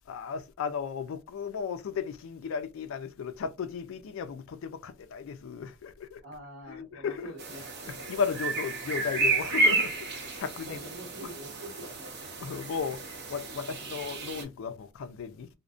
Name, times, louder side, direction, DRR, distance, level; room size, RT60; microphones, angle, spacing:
voice 1, 0.1-6.2 6.7-7.3 7.9-10.8 12.4-13.0 13.3-15.5, left 6 dB, 65° left, 0.3 m, -35 dB
voice 2, 6.2-7.7 10.6-12.2, right 1 dB, 75° right, 0.9 m, -45 dB
sound 1, 7.4-14.4, right 2 dB, 55° right, 0.7 m, -31 dB
2.5 x 2.1 x 2.4 m
head